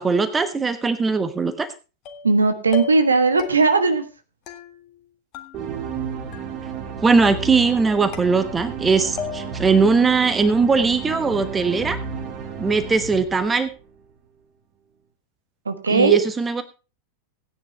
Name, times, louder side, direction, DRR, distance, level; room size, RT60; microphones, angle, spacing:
voice 1, 0.0-1.7 7.0-12.0 12.6-13.7 15.9-16.6, right 4 dB, 15° right, 10 dB, 1.2 m, -20 dB
sound 1, 2.1-2.4 2.7-3.1 3.4-3.9 4.5-5.1 5.3-6.0 6.3-6.9 7.2-7.8 8.1-8.8 9.2-9.7, left 6 dB, 40° left, 1.7 m, -36 dB
voice 2, 2.2-4.0 15.6-16.2, right 3 dB, 75° right, 8 dB, 1.4 m, -18 dB
sound 2, 5.5-14.0, right 6 dB, 35° right, 2.1 m, -33 dB
16.0 x 9.8 x 3.4 m, 0.32 s
figure-of-eight pair, 90°, 0 cm